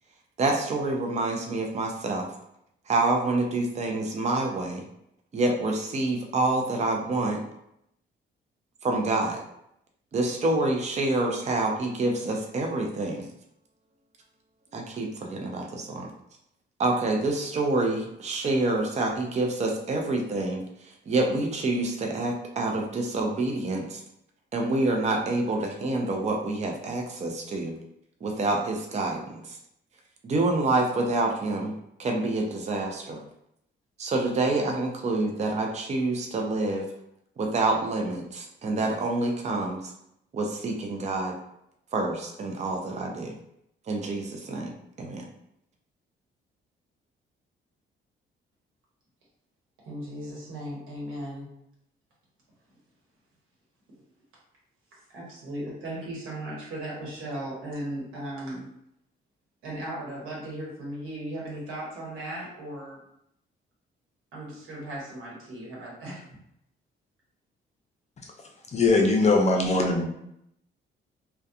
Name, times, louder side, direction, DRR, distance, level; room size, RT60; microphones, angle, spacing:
voice 1, 0.4-2.3 2.9-4.8 5.3-7.4 8.8-9.4 10.1-13.2 14.7-16.1 16.8-20.6 21.1-24.0 24.5-27.7 28.2-29.2 29.5-29.6 30.2-31.7 32.0-33.2 34.0-36.8 37.4-39.8 40.3-41.3 41.9-43.3 43.9-44.7 45.0-45.2, right 2 dB, 35° right, 1 dB, 0.5 m, -27 dB
voice 2, 49.9-51.5 54.9-58.6 59.6-63.0 64.3-66.3, right 1 dB, 85° right, -5 dB, 1.1 m, -37 dB
voice 3, 68.7-70.0, left 3 dB, 35° left, 2 dB, 0.5 m, -21 dB
2.3 x 2.2 x 2.7 m, 0.77 s
cardioid pair, 90°, 20 cm